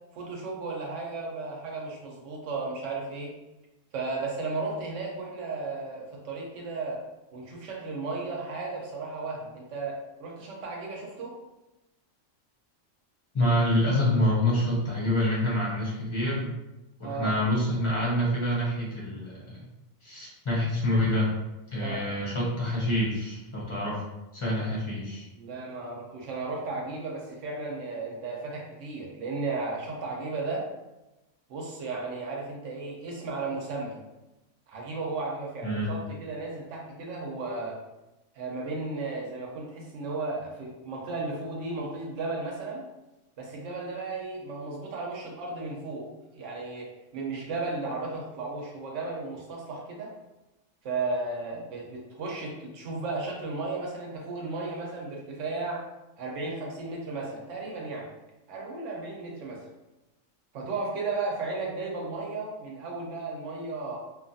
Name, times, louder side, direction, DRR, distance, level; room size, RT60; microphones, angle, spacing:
voice 1, 0.1-3.3 3.9-7.0 7.3-11.3 17.0-17.3 21.8-22.0 25.3-30.7 31.5-34.0 34.7-37.8 38.3-42.8 43.4-46.1 46.3-50.1 50.8-55.8 56.2-58.1 58.5-59.7 60.5-64.0, right 3 dB, 70° right, -1 dB, 1.0 m, -34 dB
voice 2, 13.3-16.5 17.0-19.6 20.0-21.3 21.7-24.0 24.3-25.3 35.6-36.0, left 1 dB, 35° left, -5 dB, 0.5 m, -27 dB
2.8 x 2.4 x 2.6 m, 1.0 s
omnidirectional pair, 1.4 m